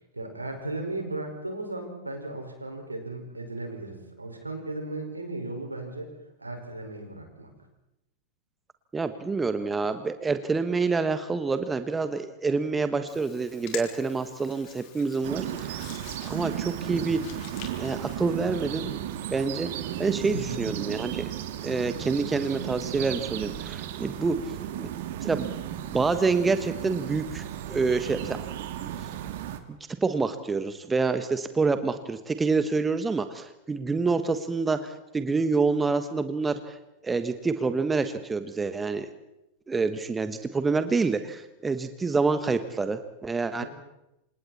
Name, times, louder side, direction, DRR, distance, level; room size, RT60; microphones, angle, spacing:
voice 1, 0.1-6.1 6.4-7.5 20.3-20.6 43.6-43.7, right 2 dB, 80° right, 3 dB, 5.3 m, -36 dB
voice 2, 8.9-15.9 16.2-17.2 17.8-18.9 19.3-19.7 20.0-21.3 21.6-24.4 24.8-24.9 25.2-28.4 30.0-36.7 37.0-39.1 39.7-43.6, right 4 dB, 15° right, 10 dB, 1.5 m, -27 dB
Hands, 13.1-18.1, left 9 dB, 45° left, 4.4 m, -45 dB
sound 1, 15.2-29.6, right 11 dB, 55° right, 2.0 m, -35 dB
28.5 x 27.5 x 4.3 m, 0.89 s
figure-of-eight pair, 90°, 0 cm